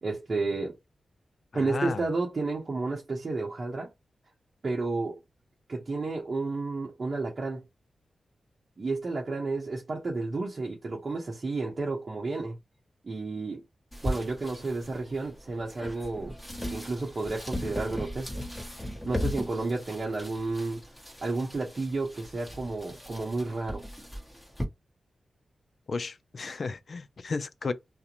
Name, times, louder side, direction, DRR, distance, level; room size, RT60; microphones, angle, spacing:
voice 1, 0.0-0.8 1.5-3.9 4.6-5.2 5.7-7.6 8.8-12.6 13.0-13.6 14.0-16.4 16.7-18.3 19.0-20.8 21.2-23.8, right 3 dB, 50° right, 0.7 m, -31 dB
voice 2, 1.5-2.1 25.9-27.7, left 4 dB, 55° left, 0.3 m, -33 dB
sound 1, 13.9-24.6, left 1 dB, 5° left, 1.1 m, -38 dB
2.4 x 2.1 x 2.8 m
wide cardioid pair, 90°, 0 cm